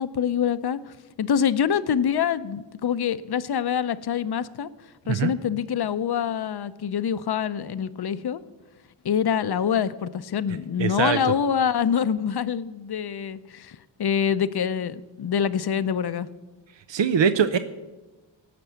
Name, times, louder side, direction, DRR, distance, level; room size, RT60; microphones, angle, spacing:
voice 1, 0.0-4.7 5.1-8.4 9.0-16.3, left 8 dB, 60° left, 14 dB, 0.7 m, -25 dB
voice 2, 10.8-11.2 16.9-17.6, right 7 dB, 80° right, 11 dB, 0.7 m, -22 dB
18.0 x 6.1 x 8.1 m, 1.1 s
wide cardioid pair, 60°, 44 cm